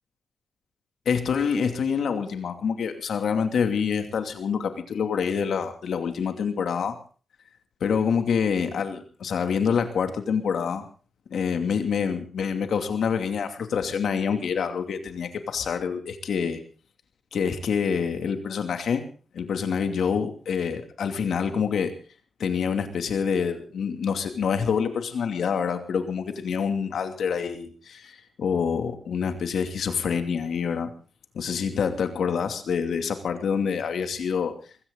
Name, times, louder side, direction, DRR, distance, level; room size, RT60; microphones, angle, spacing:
voice 1, 1.1-7.0 7.8-10.8 11.3-16.6 17.3-19.0 19.3-21.9 22.4-30.9 31.3-34.5, left 6 dB, 80° left, 7 dB, 2.6 m, -26 dB
21.5 x 16.0 x 3.9 m, 0.38 s
wide cardioid pair, 100°, 0 cm